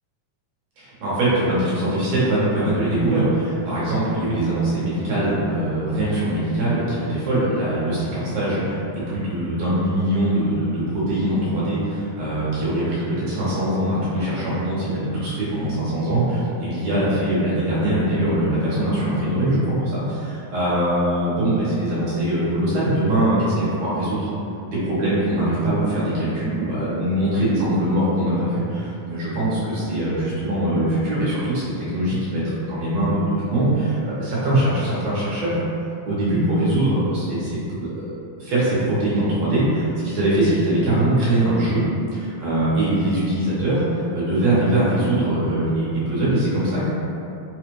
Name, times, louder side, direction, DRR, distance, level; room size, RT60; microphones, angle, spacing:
voice 1, 0.8-24.3 24.7-35.6 36.0-38.1 38.4-41.8 42.1-46.9, right 1 dB, 65° right, -9 dB, 1.8 m, -22 dB
5.0 x 2.4 x 3.0 m, 2.7 s
omnidirectional pair, 3.8 m